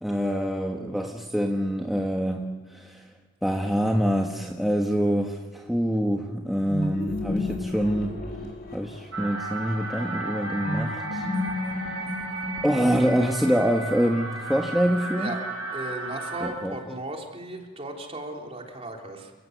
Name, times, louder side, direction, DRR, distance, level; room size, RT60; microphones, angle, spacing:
voice 1, 0.0-3.1 3.4-8.2 8.7-11.3 12.6-15.3 16.4-16.8, equal, ahead, 0 dB, 1.4 m, -25 dB
sound 1, 6.7-9.2 10.6-13.1, left 2 dB, 50° left, 4.8 m, -32 dB
sound 2, 9.1-16.5, right 2 dB, 75° right, 6.4 m, -34 dB
voice 2, 15.7-19.3, right 2 dB, 30° right, 1 dB, 3.4 m, -36 dB
29.0 x 17.5 x 8.0 m, 1.5 s
head